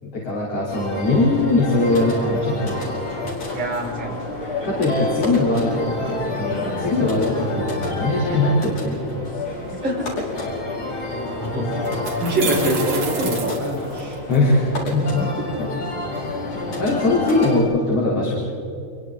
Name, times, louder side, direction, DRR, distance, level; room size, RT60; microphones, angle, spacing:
voice 1, 0.0-2.8 4.6-9.3 14.3-14.6 14.9-15.2 16.8-18.4, left 2 dB, 50° left, -5 dB, 4.9 m, -21 dB
sound 1, 0.7-17.6, left 2 dB, 65° left, 6.8 m, -28 dB
voice 2, 3.5-4.2 9.8-10.1 10.9-11.0 11.3-11.7 12.2-14.2 15.2-15.4, right 1 dB, 35° right, -4 dB, 6.0 m, -25 dB
sound 2, 11.2-11.3 11.9-14.4, right 5 dB, 55° right, 3.6 m, -30 dB
29.0 x 23.0 x 4.0 m, 2.6 s
omnidirectional pair, 3.6 m